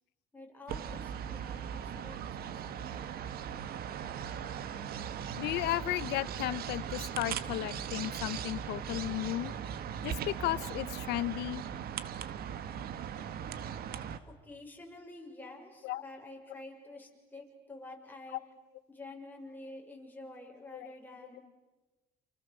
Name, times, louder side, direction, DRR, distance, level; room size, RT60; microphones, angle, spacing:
voice 1, 0.3-3.2 14.4-18.4 18.9-21.4, left 2 dB, 10° left, 0 dB, 6.7 m, -49 dB
sound 1, 0.7-14.2, right 8 dB, 65° right, 1.6 m, -39 dB
voice 2, 5.4-9.5 10.0-11.6 15.8-16.0 18.3-18.4 20.7-20.9, left 16 dB, 85° left, 16 dB, 1.0 m, -34 dB
29.5 x 29.0 x 7.0 m, 1.2 s
cardioid pair, 110°, 17 cm